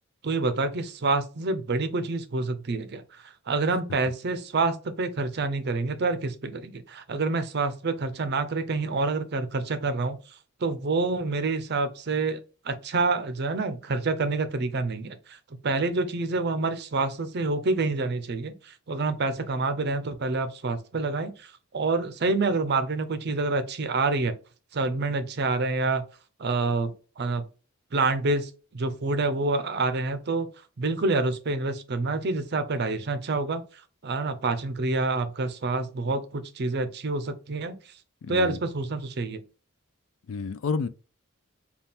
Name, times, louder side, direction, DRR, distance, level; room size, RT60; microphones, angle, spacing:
voice 1, 0.2-10.2 10.6-12.4 12.6-15.4 15.6-24.4 24.7-26.0 26.4-27.4 27.9-30.5 30.8-33.6 34.0-37.7 38.3-39.4, right 3 dB, 50° right, 0.5 m, -27 dB
voice 2, 38.2-38.6 40.3-40.9, left 4 dB, 75° left, 0.4 m, -30 dB
4.2 x 2.3 x 3.5 m
head